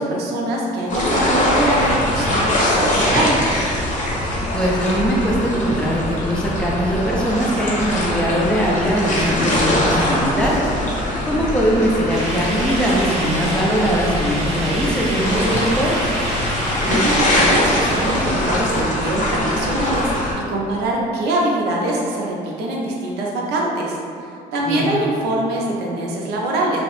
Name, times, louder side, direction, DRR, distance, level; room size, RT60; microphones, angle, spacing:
voice 1, 0.0-3.4 16.8-26.8, right 1 dB, 80° right, -3 dB, 0.5 m, -23 dB
sound 1, 0.9-20.3, left 1 dB, 50° left, 0.7 m, -22 dB
voice 2, 4.5-16.1 24.7-24.9, equal, 5° left, -4 dB, 0.4 m, -21 dB
sound 2, 12.1-18.3, right 1 dB, 35° right, 0.7 m, -29 dB
2.8 x 2.0 x 3.0 m, 2.5 s
cardioid pair, 110°, 17 cm